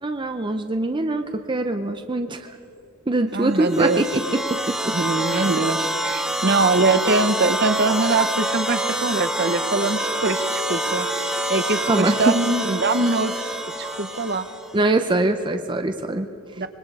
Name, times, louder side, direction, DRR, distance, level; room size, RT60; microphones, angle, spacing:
voice 1, 0.0-2.6 3.1-5.0 11.9-12.4 14.7-16.7, right 2 dB, 25° right, 7 dB, 0.6 m, -23 dB
voice 2, 3.3-4.0 4.9-11.1 11.5-14.5 16.6-16.7, right 3 dB, 50° right, 10 dB, 1.0 m, -23 dB
sound 1, 3.5-14.7, right 1 dB, 5° right, 1.2 m, -26 dB
sound 2, 7.7-8.1 8.6-8.9 9.8-10.2 11.1-11.2 11.5-12.0 12.7-14.0 14.3-14.4, right 5 dB, 80° right, 3.0 m, -39 dB
25.0 x 22.0 x 4.8 m, 2.8 s
head